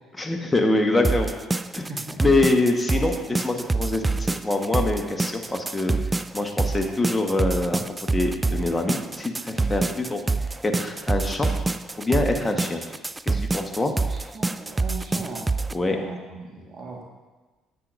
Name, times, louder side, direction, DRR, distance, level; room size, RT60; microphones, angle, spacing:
voice 1, 0.1-1.3 1.7-1.9 2.2-5.9 6.3-7.8 8.1-10.2 10.6-11.5 12.0-12.8 13.3-13.9 15.7-16.0, left 2 dB, 15° left, 2 dB, 1.3 m, -24 dB
sound 1, 1.0-15.7, right 3 dB, 20° right, 0.3 m, -26 dB
voice 2, 1.9-2.2 13.8-14.0 14.3-15.5 15.9-17.0, right 3 dB, 40° right, 0 dB, 1.6 m, -38 dB
10.0 x 8.2 x 2.6 m, 1.2 s
hypercardioid pair, 55°, 0 cm